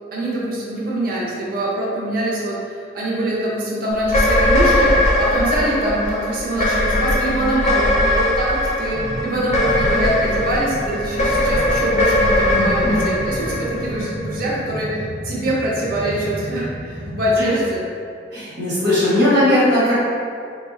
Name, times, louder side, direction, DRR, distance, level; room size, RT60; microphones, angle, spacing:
voice 1, 0.1-17.9, right 1 dB, 50° right, -6 dB, 0.7 m, -23 dB
sound 1, 4.0-14.5, left 1 dB, 40° left, 0.4 m, -20 dB
sound 2, 8.9-17.3, equal, 5° left, 0.7 m, -32 dB
voice 2, 12.5-13.1 17.4-17.5 18.3-19.9, left 1 dB, 75° right, -10 dB, 1.0 m, -18 dB
3.4 x 2.1 x 3.6 m, 2.3 s
head